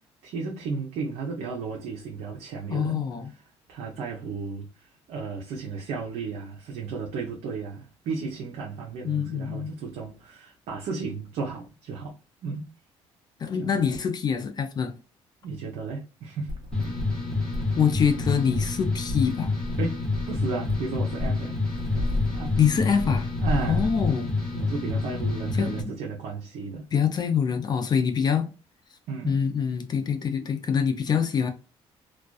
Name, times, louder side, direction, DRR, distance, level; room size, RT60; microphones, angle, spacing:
voice 1, 0.2-3.1 3.7-12.1 12.4-12.7 13.6-14.0 15.4-16.5 16.8-17.0 19.8-21.6 22.3-22.6 23.4-23.9 24.5-26.8 29.1-29.4, right 4 dB, 75° right, 0.7 m, -34 dB
voice 2, 2.7-3.3 9.0-9.7 13.4-14.9 17.8-19.5 22.6-23.3 23.7-24.3 25.5-25.8 26.9-28.5 29.2-31.5, left 7 dB, 40° left, 0.5 m, -25 dB
sound 1, 16.5-24.1, left 1 dB, 45° right, 0.9 m, -34 dB
sound 2, 16.7-25.8, left 3 dB, 5° left, 0.9 m, -28 dB
2.4 x 2.2 x 2.3 m
cardioid pair, 105°, 11 cm